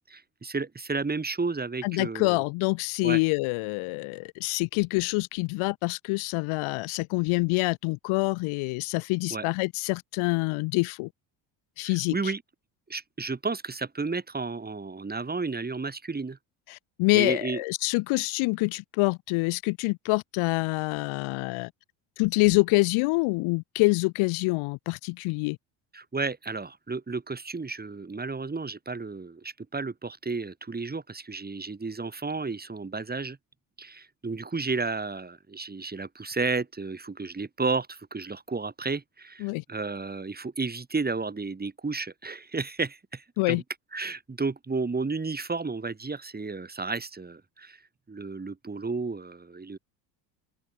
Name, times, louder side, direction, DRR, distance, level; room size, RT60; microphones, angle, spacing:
voice 1, 0.1-2.4 3.0-3.2 9.3-9.4 11.8-12.4 12.9-16.4 17.1-17.6 25.9-33.4 33.8-43.6 43.9-47.8 48.1-49.8, right 4 dB, 20° right, 3.6 m, -32 dB
voice 2, 1.8-11.1 11.8-12.2 16.7-21.7 22.2-25.6 39.4-39.6 43.4-43.6, left 26 dB, 75° left, 1.4 m, -26 dB
open air
supercardioid pair, 85°, 49 cm